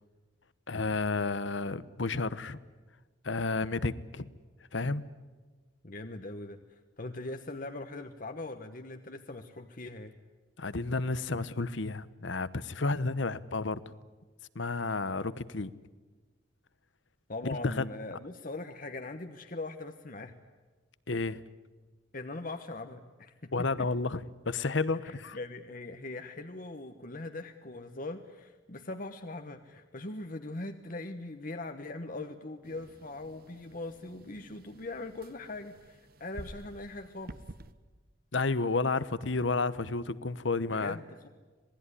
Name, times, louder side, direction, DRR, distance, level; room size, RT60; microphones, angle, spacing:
voice 1, 0.7-2.6 3.2-4.3 4.7-5.0 10.6-13.8 14.5-15.7 17.4-17.8 21.1-21.4 23.5-25.4 38.3-41.0, left 3 dB, 75° left, 16 dB, 1.1 m, -31 dB
voice 2, 5.8-10.1 17.3-20.4 22.1-23.5 23.8-23.9 25.0-37.4 40.7-41.3, left 2 dB, 45° left, 7 dB, 1.2 m, -41 dB
sound 1, 32.6-37.7, right 1 dB, 50° right, 1.1 m, -50 dB
27.0 x 19.5 x 9.9 m, 1.3 s
head